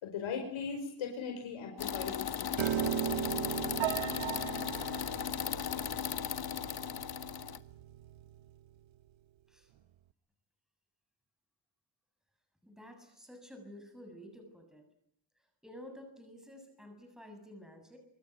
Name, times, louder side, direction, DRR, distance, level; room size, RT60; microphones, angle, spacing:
voice 1, 0.0-2.7, left 6 dB, 85° left, 3 dB, 5.2 m, -39 dB
sound 1, 1.8-7.6, left 8 dB, 50° left, 1.5 m, -36 dB
Piano, 2.6-8.8, right 11 dB, 75° right, 1.3 m, -38 dB
voice 2, 12.6-14.8 15.6-18.0, equal, ahead, 5 dB, 7.3 m, -51 dB
26.0 x 24.0 x 9.3 m, 0.70 s
cardioid pair, 115°, 47 cm